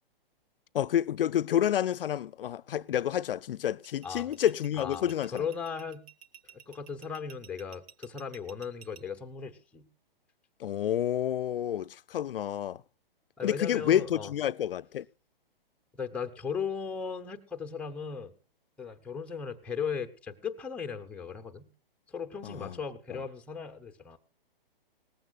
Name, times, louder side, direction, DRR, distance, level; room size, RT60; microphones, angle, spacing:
voice 1, 0.7-5.4 10.6-12.8 13.4-15.0 22.4-22.8, left 10 dB, 70° left, 0.5 m, -29 dB
sound 1, 3.7-9.0, right 8 dB, 40° right, 1.0 m, -52 dB
voice 2, 4.8-6.0 6.7-9.9 13.4-14.3 15.9-18.3 18.8-21.7 22.1-24.2, left 6 dB, 5° left, 0.7 m, -37 dB
18.5 x 15.0 x 2.4 m
hypercardioid pair, 140°, 29 cm